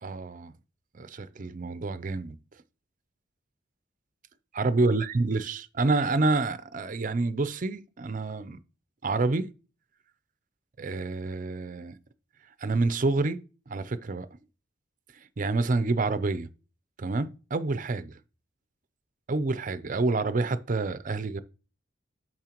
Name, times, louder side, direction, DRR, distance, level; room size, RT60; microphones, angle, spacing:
voice 1, 0.0-0.5 0.9-2.4 4.5-8.6 9.0-9.5 10.8-11.9 12.6-13.4 13.7-14.3 15.4-16.5 17.0-18.2 19.3-21.4, right 3 dB, 45° right, 0.5 m, -28 dB
8.8 x 6.4 x 3.0 m
head